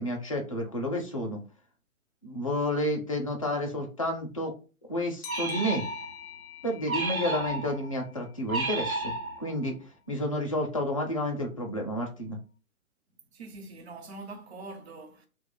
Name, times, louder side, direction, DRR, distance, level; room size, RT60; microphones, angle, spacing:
voice 1, 0.0-1.4 2.2-4.5 4.9-5.8 6.6-9.1 9.4-9.8 10.1-12.4, left 1 dB, 25° left, 0.4 m, -30 dB
sound 1, 5.2-8.6, left 12 dB, 80° left, 0.5 m, -45 dB
sound 2, 5.3-6.3 6.9-7.9 8.5-9.7, right 2 dB, 80° right, 1.0 m, -32 dB
voice 2, 13.3-15.3, right 3 dB, 50° right, 0.7 m, -43 dB
2.9 x 2.3 x 3.6 m
figure-of-eight pair, 130°, 42 cm